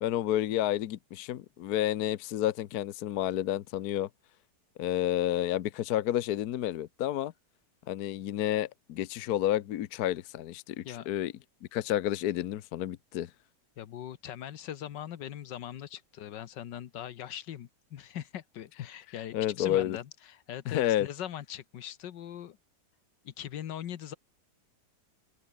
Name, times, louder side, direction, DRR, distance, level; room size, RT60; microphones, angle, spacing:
voice 1, 0.0-4.1 4.8-7.3 7.9-11.3 11.7-13.3 19.3-20.0 20.7-21.1, left 12 dB, 65° left, 1.2 m, -30 dB
voice 2, 13.8-22.6 23.2-24.2, left 10 dB, 85° left, 1.7 m, -41 dB
omnidirectional pair, 1.9 m